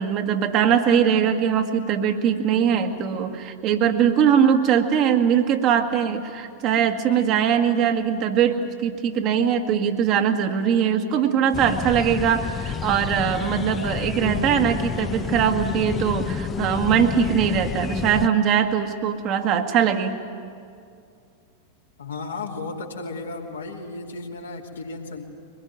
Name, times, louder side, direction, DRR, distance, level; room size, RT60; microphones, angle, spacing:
voice 1, 0.0-20.2, right 8 dB, 40° right, 5 dB, 1.7 m, -21 dB
sound 1, 11.5-18.3, left 7 dB, 25° left, 0.8 m, -29 dB
voice 2, 22.0-25.2, left 3 dB, 70° left, 0 dB, 2.7 m, -34 dB
23.5 x 20.5 x 9.1 m, 2.4 s
figure-of-eight pair, 90°, 0 cm